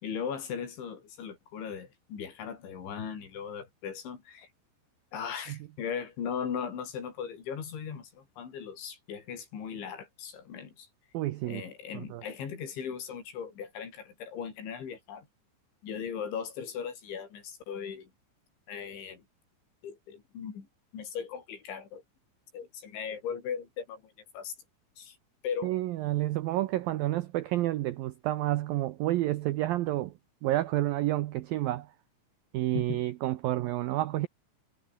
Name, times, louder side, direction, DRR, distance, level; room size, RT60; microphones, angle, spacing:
voice 1, 0.0-4.5 5.1-10.9 11.5-15.3 15.8-18.1 18.7-19.2 19.8-20.7 20.9-22.0 22.5-24.6 25.0-25.2 25.4-25.7 32.7-33.0, left 7 dB, 85° left, 6.8 m, -38 dB
voice 2, 11.1-11.6 11.9-12.2 25.6-30.1 30.4-31.9 32.5-34.3, right 15 dB, 85° right, 2.0 m, -29 dB
omnidirectional pair, 5.2 m